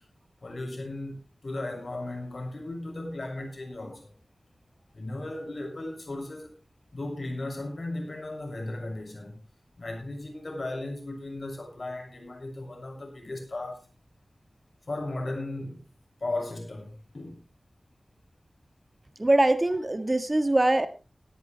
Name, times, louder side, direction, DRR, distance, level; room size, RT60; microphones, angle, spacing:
voice 1, 0.4-4.2 4.9-6.5 6.9-9.4 9.8-13.8 14.9-15.8 16.2-17.4, left 2 dB, 60° left, 6.6 m, -36 dB
voice 2, 19.2-20.9, right 1 dB, 35° right, 1.6 m, -22 dB
18.0 x 10.5 x 3.4 m
wide cardioid pair, 60°, 0 cm